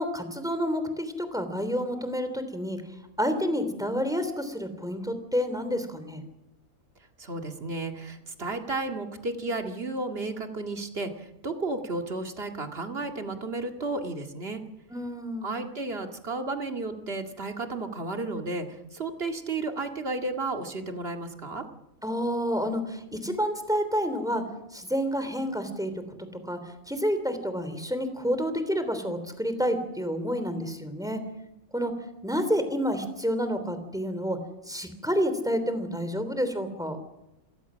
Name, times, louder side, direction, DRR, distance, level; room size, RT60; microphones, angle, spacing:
voice 1, 0.0-2.8 3.2-6.2 14.9-15.5 22.0-24.4 24.7-25.9 26.4-26.6 26.9-31.2 31.7-31.9 32.2-34.4 34.7-37.0, equal, ahead, 9 dB, 3.1 m, -29 dB
voice 2, 7.2-14.6 15.4-21.6, right 2 dB, 40° right, 4 dB, 2.4 m, -33 dB
28.0 x 17.5 x 6.3 m, 0.93 s
omnidirectional pair, 1.5 m